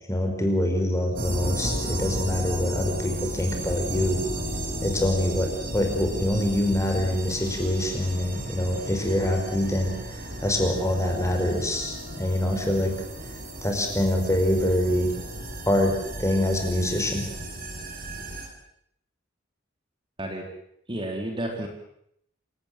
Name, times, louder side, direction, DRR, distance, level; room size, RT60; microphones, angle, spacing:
voice 1, 0.1-4.2 4.8-9.9 10.4-12.9 13.6-15.1 15.7-15.9 16.2-17.2, left 1 dB, 15° left, 3 dB, 5.2 m, -25 dB
sound 1, 1.2-18.5, right 1 dB, 50° right, 6.0 m, -34 dB
voice 2, 20.9-21.7, right 1 dB, 25° right, 2 dB, 4.0 m, -31 dB
27.5 x 18.0 x 7.8 m, 0.73 s
head